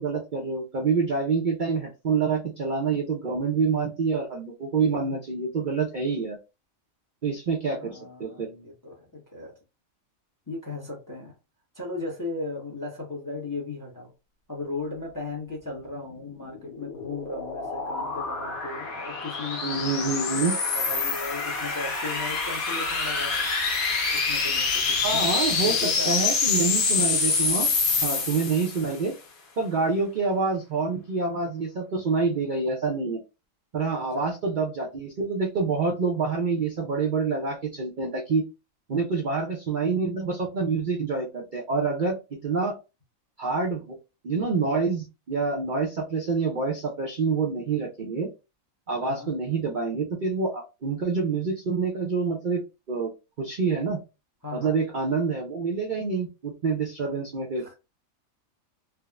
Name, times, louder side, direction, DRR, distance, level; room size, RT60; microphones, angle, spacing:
voice 1, 0.0-6.4 7.2-8.5 19.6-20.5 25.0-25.8 26.1-27.7 28.0-29.1 29.6-33.2 33.7-38.4 38.9-42.2 42.4-42.7 43.4-44.0 44.2-48.3 48.9-52.6 52.9-53.1 53.4-54.0 54.5-57.6, right 4 dB, 50° right, 0.6 m, -27 dB
voice 2, 7.8-9.6 10.5-11.3 11.7-14.1 14.5-23.5 24.1-26.1 28.1-28.3 33.9-34.3 49.0-49.3 54.4-54.8 57.6-57.7, left 2 dB, 20° left, 0.6 m, -37 dB
sound 1, 16.3-29.0, left 4 dB, 90° left, 1.2 m, -26 dB
3.5 x 2.0 x 2.2 m
omnidirectional pair, 1.4 m